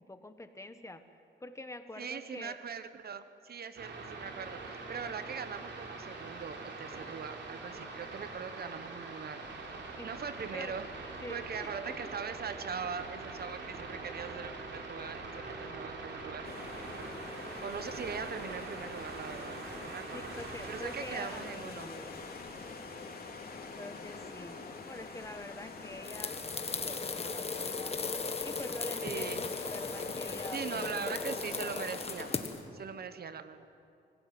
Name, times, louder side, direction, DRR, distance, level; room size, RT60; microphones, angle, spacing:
voice 1, 0.0-2.6 10.0-10.1 10.5-10.7 11.2-11.7 17.4-17.7 20.1-22.2 23.7-24.6 24.8-26.4 26.8-28.0 28.4-31.0, left 2 dB, 15° left, 9 dB, 1.4 m, -46 dB
voice 2, 2.0-9.4 9.7-10.8 11.3-16.8 17.6-20.3 20.7-21.9 29.0-29.5 30.5-32.3 32.7-33.7, right 6 dB, 55° right, 11 dB, 1.2 m, -41 dB
sound 1, 3.8-21.4, right 3 dB, 75° right, 3.9 m, -43 dB
sound 2, 16.4-32.4, left 4 dB, 50° left, 3.4 m, -46 dB
sound 3, 26.0-32.6, left 4 dB, 35° left, 1.6 m, -37 dB
24.5 x 17.0 x 9.4 m, 2.7 s
cardioid pair, 100°, 19 cm